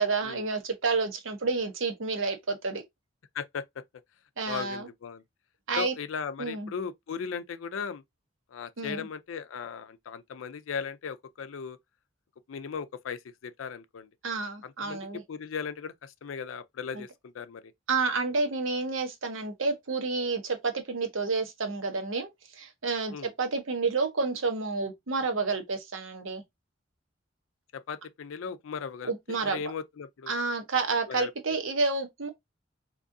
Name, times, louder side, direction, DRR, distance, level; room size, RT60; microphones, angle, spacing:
voice 1, 0.0-2.8 4.4-4.9 5.7-5.9 6.4-6.7 8.8-9.1 14.2-15.2 16.9-17.0 17.9-26.4 29.0-29.6 30.3-32.3, right 4 dB, 90° right, 0.9 m, -30 dB
voice 2, 3.3-3.8 4.5-5.2 5.8-8.0 8.5-11.8 12.5-14.1 14.6-17.6 23.1-23.3 27.7-30.3 31.1-31.3, left 6 dB, 85° left, 0.4 m, -37 dB
3.6 x 3.0 x 2.6 m
head